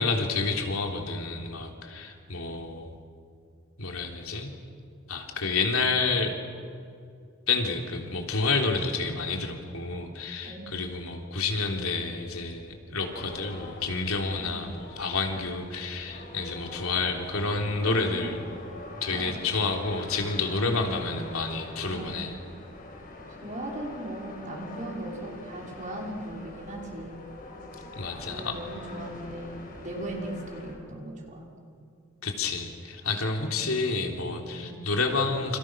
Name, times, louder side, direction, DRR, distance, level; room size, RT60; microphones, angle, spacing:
voice 1, 0.0-2.9 3.8-4.5 5.1-6.4 7.5-18.4 19.0-22.3 27.9-28.6 32.2-35.6, left 3 dB, 85° left, 2 dB, 3.5 m, -29 dB
voice 2, 10.4-10.7 14.4-14.6 17.5-18.3 19.1-19.5 20.6-20.9 21.9-22.3 23.3-27.3 28.3-31.5 33.4-33.9 34.5-34.8, right 1 dB, 35° right, -1 dB, 5.4 m, -39 dB
sound 1, 13.1-30.8, left 2 dB, 40° left, 5.8 m, -44 dB
29.5 x 28.0 x 6.3 m, 2.4 s
head